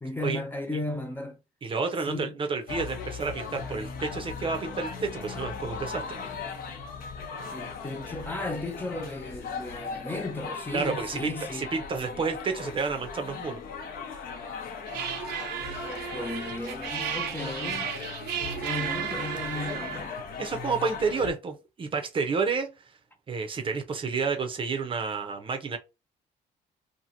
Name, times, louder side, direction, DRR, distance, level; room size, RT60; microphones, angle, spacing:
voice 1, 0.0-1.4 2.1-2.4 7.5-11.7 15.8-17.9 18.5-20.2, left 2 dB, 10° left, 0.4 m, -35 dB
voice 2, 1.6-6.2 10.7-13.6 20.4-22.7 23.3-25.8, right 4 dB, 30° right, 0.6 m, -30 dB
sound 1, 2.7-21.3, left 5 dB, 60° left, 0.7 m, -38 dB
sound 2, 14.9-20.1, right 9 dB, 85° right, 0.6 m, -34 dB
2.8 x 2.6 x 2.6 m
cardioid pair, 110°, 17 cm